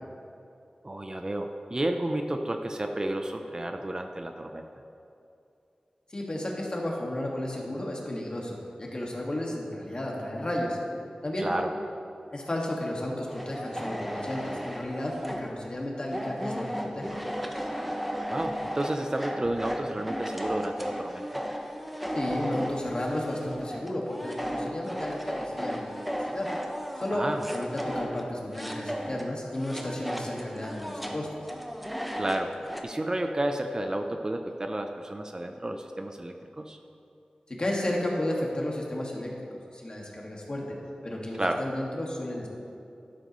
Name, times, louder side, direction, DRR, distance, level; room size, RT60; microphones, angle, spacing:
voice 1, 0.8-4.7 11.4-11.7 18.3-21.2 27.1-27.4 32.2-32.5 32.8-36.8 41.4-41.6, right 1 dB, 30° right, 5 dB, 0.6 m, -31 dB
voice 2, 6.1-10.8 11.2-11.5 12.3-17.1 22.1-26.0 26.3-26.5 27.0-27.2 27.5-31.3 37.5-39.3 39.7-40.6 41.0-42.5, left 1 dB, 40° left, -2 dB, 2.0 m, -33 dB
sound 1, 13.3-15.6 16.1-29.3 29.5-32.8, equal, ahead, 1.0 m, -35 dB
12.5 x 11.5 x 3.2 m, 2.6 s
wide cardioid pair, 75°, 2 cm